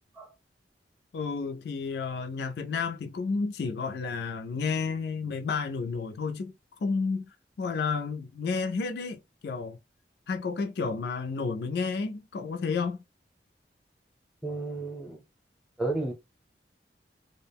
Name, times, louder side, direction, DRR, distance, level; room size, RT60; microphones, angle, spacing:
voice 1, 1.1-6.5 6.8-9.8 10.3-13.0, left 4 dB, 65° left, 0.3 m, -31 dB
voice 2, 14.4-15.2 15.8-16.1, right 2 dB, ahead, 0.7 m, -32 dB
2.4 x 2.0 x 3.3 m
head